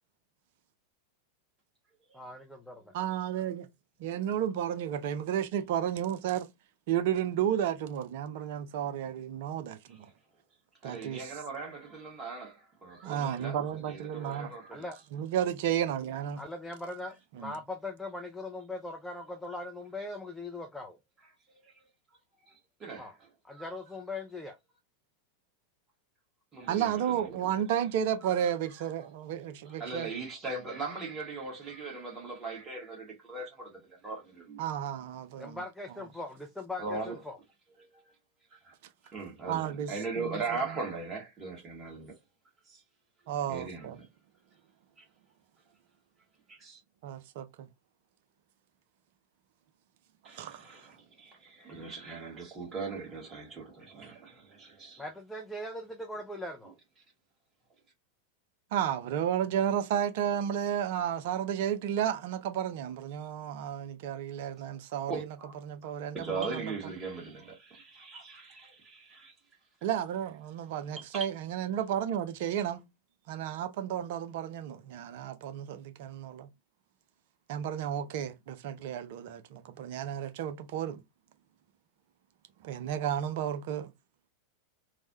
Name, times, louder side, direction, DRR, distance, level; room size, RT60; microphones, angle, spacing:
voice 1, 2.1-2.9 14.7-15.0 16.4-21.0 23.0-23.2 23.4-24.6 35.4-37.4 55.0-56.7, left 2 dB, 5° left, 0.4 m, -40 dB
voice 2, 2.9-3.7 4.0-6.5 6.9-10.0 10.8-11.3 13.0-14.5 15.1-16.4 17.4-17.5 26.7-30.1 34.6-35.6 39.5-40.4 43.3-44.0 47.0-47.5 50.3-50.6 58.7-65.4 65.6-66.6 69.8-72.9 73.3-76.5 77.5-81.0 82.6-83.9, right 10 dB, 50° right, 0.4 m, -32 dB
voice 3, 10.8-14.9 21.6-21.7 22.5-23.1 23.5-23.7 26.5-27.5 28.2-28.3 29.7-34.6 36.8-37.2 37.9-38.0 38.6-38.7 39.0-42.1 42.7-42.8 43.5-44.1 45.0-45.1 46.5-46.8 50.2-55.0 65.1-65.5 66.1-69.3 71.1-71.3, right 4 dB, 25° right, 1.4 m, -39 dB
3.2 x 2.1 x 2.7 m
figure-of-eight pair, 90°, 0 cm